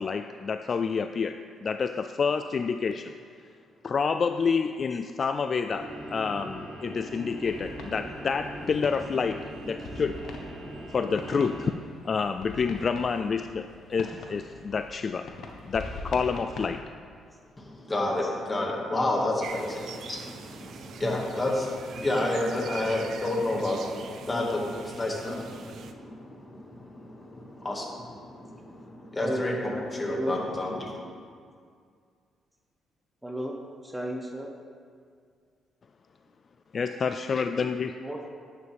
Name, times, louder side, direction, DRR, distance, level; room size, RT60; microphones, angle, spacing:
voice 1, 0.0-3.1 3.8-10.2 10.9-11.7 12.0-15.3 15.7-16.8 36.7-38.0, left 5 dB, 45° left, 9 dB, 0.3 m, -28 dB
sound 1, 5.7-11.7, right 1 dB, 35° right, 2.9 m, -40 dB
sound 2, 7.4-16.8, left 3 dB, 75° left, 1.1 m, -43 dB
voice 2, 17.6-31.0, left 1 dB, 20° left, -1 dB, 2.0 m, -30 dB
sound 3, 19.4-25.9, right 6 dB, 70° right, 0.6 m, -43 dB
voice 3, 29.2-29.5 30.1-30.3 33.2-34.5 38.0-38.3, right 1 dB, 10° right, 1 dB, 1.0 m, -33 dB
10.5 x 9.6 x 3.5 m, 2.1 s
cardioid pair, 90°, 0 cm